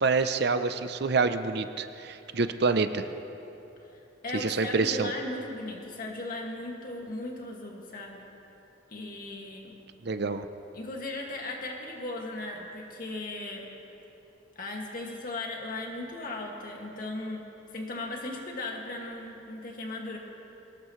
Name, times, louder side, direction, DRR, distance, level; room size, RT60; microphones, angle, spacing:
voice 1, 0.0-3.1 4.3-5.1 10.0-10.5, right 4 dB, 60° right, 10 dB, 0.6 m, -27 dB
voice 2, 3.9-8.2 8.9-9.7 10.7-13.7 14.6-17.4 17.7-20.2, left 2 dB, 45° left, 0 dB, 2.1 m, -37 dB
23.0 x 18.5 x 3.2 m, 3.0 s
head